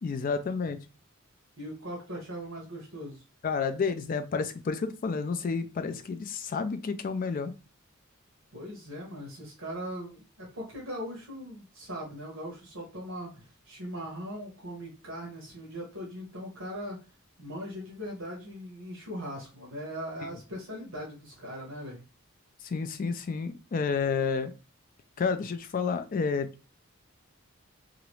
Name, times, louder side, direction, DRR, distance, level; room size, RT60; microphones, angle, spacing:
voice 1, 0.0-0.8 3.4-7.5 22.6-24.5 25.2-26.5, left 5 dB, 40° left, 9 dB, 0.3 m, -30 dB
voice 2, 1.6-3.2 8.5-17.0 17.4-22.0, equal, 70° right, -2 dB, 1.1 m, -40 dB
2.9 x 2.5 x 3.0 m, 0.31 s
head